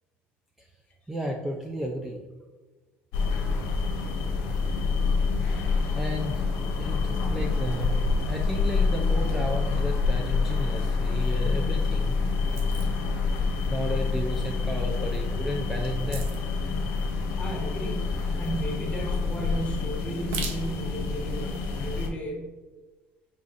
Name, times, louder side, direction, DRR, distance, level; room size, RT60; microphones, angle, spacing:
voice 1, 1.1-2.2 5.9-6.5 6.8-7.9 8.2-12.2 13.7-16.3 16.9-17.0, equal, 10° right, 0 dB, 0.5 m, -33 dB
sound 1, 3.1-22.1, left 4 dB, 90° left, 0.9 m, -27 dB
sound 2, 11.0-21.5, right 2 dB, 85° right, 0.8 m, -43 dB
voice 2, 17.4-22.6, right 1 dB, 25° left, -1 dB, 1.2 m, -35 dB
5.6 x 3.7 x 2.5 m, 1.3 s
cardioid pair, 120°, 5 cm